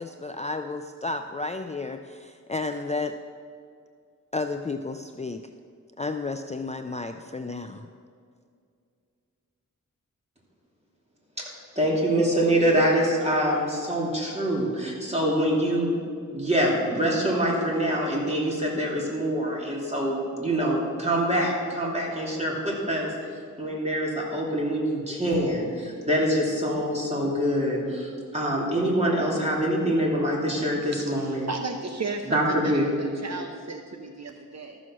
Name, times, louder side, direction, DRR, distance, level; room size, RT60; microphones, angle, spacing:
voice 1, 0.0-3.2 4.3-5.5 6.0-7.9, left 3 dB, 20° left, 7 dB, 0.4 m, -32 dB
voice 2, 11.7-15.9 16.3-23.1 23.6-31.5 32.3-32.9, equal, 20° right, -3 dB, 3.0 m, -25 dB
voice 3, 30.8-34.8, right 3 dB, 55° right, 4 dB, 0.8 m, -35 dB
13.5 x 6.3 x 6.2 m, 2.3 s
wide cardioid pair, 70°, 31 cm